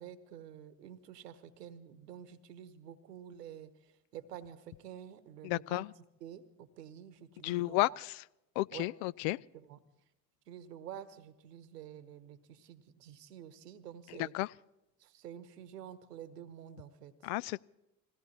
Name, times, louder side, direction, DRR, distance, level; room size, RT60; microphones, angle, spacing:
voice 1, 0.0-5.8 6.2-8.0 8.7-8.9 9.5-9.8 10.5-14.3 15.0-17.3, right 10 dB, 85° right, 1.2 m, -49 dB
voice 2, 5.4-5.9 7.4-8.2 8.6-9.4 14.3-14.5 17.2-17.6, left 19 dB, 60° left, 0.5 m, -32 dB
20.5 x 16.5 x 4.2 m
hypercardioid pair, 70°, 47 cm